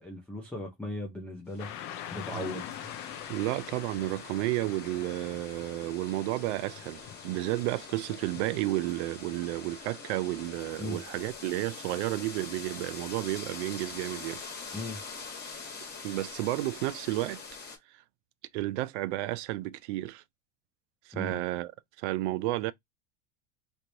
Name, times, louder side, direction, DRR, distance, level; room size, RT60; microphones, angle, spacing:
voice 1, 0.0-2.7 10.8-11.0 14.7-15.0 21.1-21.4, left 2 dB, 5° left, 0.4 m, -38 dB
sound 1, 1.5-17.8, left 5 dB, 25° left, 1.2 m, -44 dB
Car passing by / Traffic noise roadway noise, 1.6-8.4, left 11 dB, 45° left, 0.6 m, -45 dB
voice 2, 3.3-14.4 16.0-17.4 18.5-20.2 21.1-21.7 22.0-22.7, right 17 dB, 70° right, 0.5 m, -32 dB
3.2 x 2.9 x 2.6 m
supercardioid pair, 150°, 37 cm